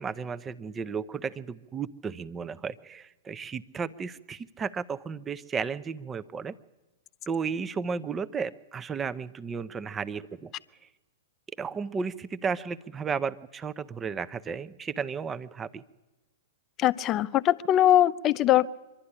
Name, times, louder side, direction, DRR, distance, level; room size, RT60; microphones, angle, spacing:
voice 1, 0.0-6.5 7.3-10.5 11.6-15.8, right 5 dB, 20° right, 14 dB, 0.7 m, -34 dB
voice 2, 16.8-18.7, left 13 dB, 35° left, 15 dB, 0.6 m, -21 dB
24.5 x 11.5 x 9.9 m, 1.1 s
hypercardioid pair, 110°, 0 cm